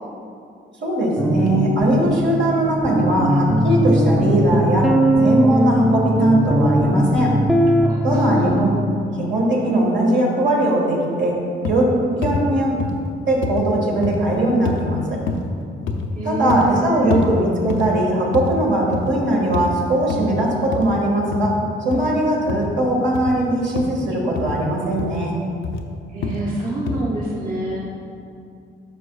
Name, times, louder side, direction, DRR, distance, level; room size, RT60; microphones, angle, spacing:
voice 1, 0.8-4.9 5.2-7.3 8.0-8.7 9.2-11.4 11.7-11.9 12.2-12.7 13.2-15.2 16.2-21.6 21.8-25.3, right 1 dB, 65° right, -3 dB, 1.6 m, -20 dB
sound 1, 1.2-8.9, equal, ahead, 0.5 m, -19 dB
voice 2, 7.8-8.7 11.8-12.2 16.2-17.2 21.9-22.2 26.1-27.8, right 2 dB, 45° right, -6 dB, 1.2 m, -27 dB
sound 2, 11.6-11.9 12.2-12.4 12.8-13.0 13.4-13.7 14.0-14.2 14.7-14.9 15.3-15.5 15.9-16.1 16.5-16.7 17.1-17.3 17.7-17.9 18.3-18.5 18.8-19.1 19.5-19.8 20.1-20.3 20.7-20.9 21.3-21.5 21.9-22.1 22.5-22.7 23.1-23.4 23.8-24.0 24.4-24.6 25.0-25.2 25.6-25.8 26.2-26.5 26.9-27.0, left 4 dB, 75° left, 0.6 m, -26 dB
9.9 x 5.5 x 2.3 m, 2.4 s
cardioid pair, 90°, 20 cm